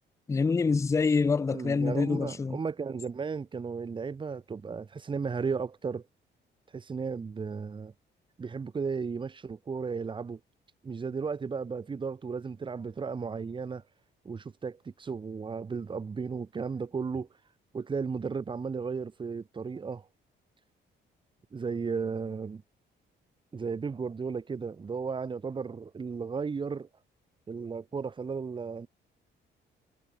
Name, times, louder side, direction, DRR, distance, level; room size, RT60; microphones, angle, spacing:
voice 1, 0.3-2.6, left 4 dB, 15° left, 0.3 m, -26 dB
voice 2, 1.5-6.1 6.7-7.9 8.4-10.4 10.8-13.8 14.2-17.3 17.7-20.1 21.5-22.6 23.5-26.9 27.5-28.9, right 5 dB, 25° right, 0.6 m, -34 dB
cardioid pair, 90°, 20 cm